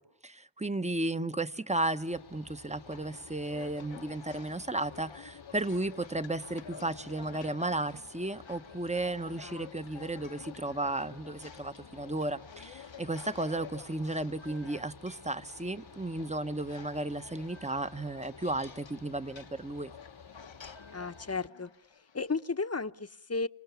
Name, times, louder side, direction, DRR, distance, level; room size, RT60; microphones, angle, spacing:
voice 1, 0.2-19.9, right 2 dB, 15° right, 1.1 m, -34 dB
Mechanical fan, 1.8-21.5, left 5 dB, 60° left, 1.2 m, -53 dB
sound 1, 2.8-22.4, left 6 dB, 75° left, 1.2 m, -51 dB
voice 2, 9.4-9.7 20.9-21.7 22.1-23.5, left 4 dB, 35° left, 1.0 m, -34 dB
29.0 x 25.5 x 7.1 m
wide cardioid pair, 60°, 45 cm